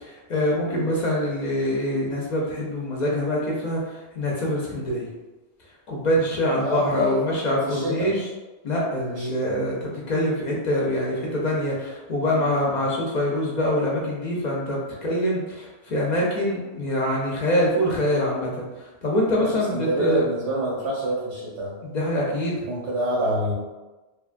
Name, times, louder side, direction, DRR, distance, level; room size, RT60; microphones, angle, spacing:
voice 1, 0.0-5.1 5.9-8.3 8.6-9.8 10.1-20.3 21.8-22.7, left 1 dB, 55° left, -3 dB, 0.5 m, -24 dB
voice 2, 6.6-7.4 7.6-8.1 9.1-9.5 12.4-12.8 19.3-21.7 22.7-23.5, right 1 dB, 85° right, -6 dB, 0.9 m, -27 dB
2.8 x 2.3 x 2.4 m, 1.2 s
omnidirectional pair, 1.1 m